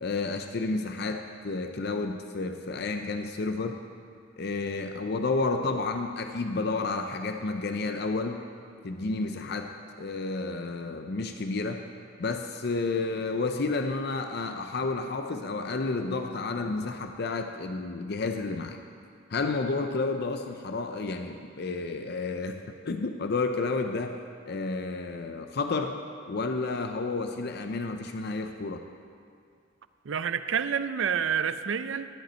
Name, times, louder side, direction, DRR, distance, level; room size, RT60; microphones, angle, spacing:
voice 1, 0.0-3.8 4.4-8.4 8.8-11.8 12.2-18.8 19.3-24.2 24.5-28.8, left 3 dB, 55° left, 6 dB, 0.5 m, -31 dB
voice 2, 30.1-32.1, right 7 dB, 70° right, 12 dB, 0.5 m, -28 dB
13.5 x 11.0 x 4.3 m, 2.2 s
head